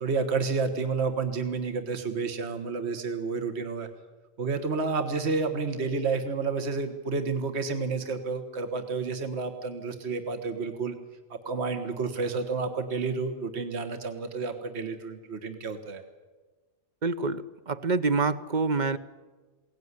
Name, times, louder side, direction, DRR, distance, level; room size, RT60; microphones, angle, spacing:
voice 1, 0.0-3.9 4.4-10.9 11.3-16.0, right 4 dB, 65° right, 7 dB, 1.7 m, -30 dB
voice 2, 17.0-19.0, right 4 dB, 45° right, 12 dB, 0.9 m, -26 dB
22.0 x 18.0 x 9.7 m, 1.3 s
omnidirectional pair, 1.2 m